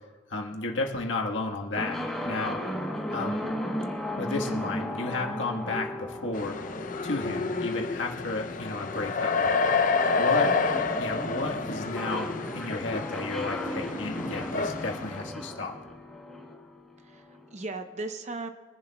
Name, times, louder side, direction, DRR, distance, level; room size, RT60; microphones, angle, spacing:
voice 1, 0.3-2.6 3.1-3.5 4.2-6.6 7.0-9.4 10.2-10.5 11.0-15.8, left 2 dB, 75° left, 1 dB, 1.4 m, -33 dB
sound 1, 1.7-17.5, left 1 dB, 5° left, 1.1 m, -36 dB
sound 2, 6.3-15.3, left 4 dB, 40° left, 0.5 m, -29 dB
voice 2, 7.3-7.8 10.4-10.7 17.0-18.5, right 3 dB, 35° right, 7 dB, 0.8 m, -38 dB
24.0 x 11.0 x 2.3 m, 1.5 s
head